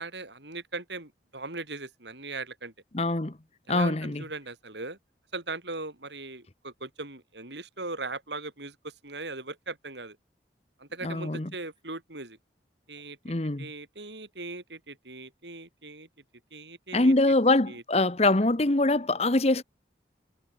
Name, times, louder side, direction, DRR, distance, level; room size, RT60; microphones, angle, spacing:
voice 1, 0.0-2.7 3.7-5.0 5.3-10.2 10.8-12.4 12.9-13.2 13.6-16.1 16.5-17.3 17.7-18.0, right 3 dB, 80° right, 7.9 m, -39 dB
voice 2, 2.9-3.4 3.7-4.2 11.0-11.5 13.2-13.7 16.9-19.6, left 2 dB, 35° left, 1.1 m, -24 dB
head